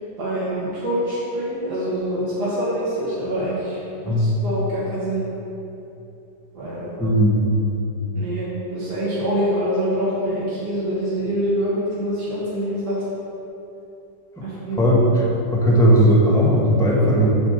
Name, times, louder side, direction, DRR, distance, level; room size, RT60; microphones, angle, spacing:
voice 1, 0.2-5.2 6.5-6.9 8.2-13.0 14.4-14.8, equal, 65° right, -9 dB, 2.0 m, -25 dB
voice 2, 7.0-7.5 14.4-14.5 14.8-15.2 15.5-17.2, equal, ahead, -5 dB, 1.1 m, -17 dB
7.0 x 4.1 x 6.5 m, 3.0 s
omnidirectional pair, 1.9 m